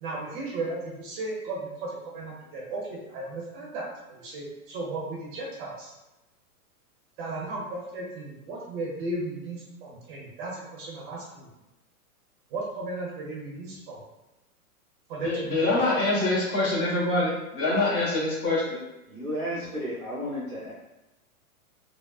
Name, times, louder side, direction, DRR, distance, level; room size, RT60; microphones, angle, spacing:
voice 1, 0.0-5.9 7.2-11.5 12.5-14.0 15.1-16.1, right 2 dB, 35° right, -4 dB, 0.7 m, -35 dB
voice 2, 15.2-18.8, left 2 dB, 30° left, -6 dB, 1.3 m, -25 dB
voice 3, 19.1-20.7, equal, 5° left, -14 dB, 0.6 m, -33 dB
3.5 x 2.0 x 2.3 m, 1.0 s
hypercardioid pair, 130°, 44 cm